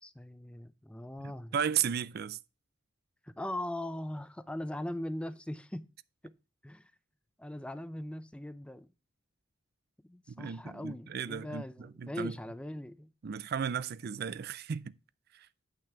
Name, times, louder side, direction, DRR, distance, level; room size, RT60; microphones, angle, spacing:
voice 1, 0.0-1.5 3.2-5.9 6.2-6.3 6.6-6.9 7.4-8.9 10.0-13.1, left 1 dB, 5° left, 0.4 m, -40 dB
voice 2, 1.2-2.4 10.3-12.3 13.2-14.9 15.3-15.5, right 8 dB, 50° right, 0.4 m, -35 dB
8.6 x 6.1 x 4.4 m
head